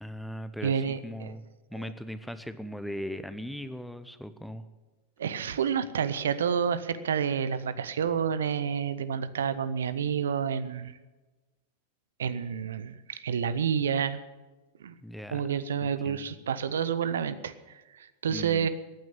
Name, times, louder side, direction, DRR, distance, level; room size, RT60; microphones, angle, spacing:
voice 1, 0.0-1.4 1.7-4.7 15.0-15.4 16.0-16.3 18.3-18.7, equal, ahead, 11 dB, 0.8 m, -39 dB
voice 2, 0.6-1.3 1.7-1.9 5.2-11.0 12.2-14.2 14.8-14.9 15.3-18.7, right 7 dB, 65° right, 14 dB, 0.6 m, -29 dB
14.5 x 9.2 x 8.5 m, 1.2 s
figure-of-eight pair, 90°, 0 cm